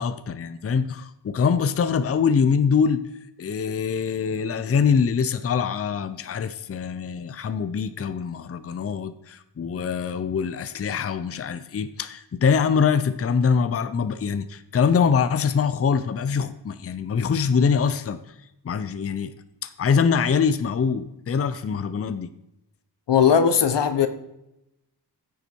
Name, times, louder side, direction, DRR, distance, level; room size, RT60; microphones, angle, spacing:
voice 1, 0.0-3.0 3.4-18.2 18.6-19.3 19.6-22.3, left 6 dB, 35° left, 11 dB, 0.6 m, -24 dB
voice 2, 23.1-24.1, left 7 dB, 85° left, 10 dB, 1.1 m, -18 dB
15.0 x 7.0 x 4.6 m, 0.88 s
wide cardioid pair, 125°, 41 cm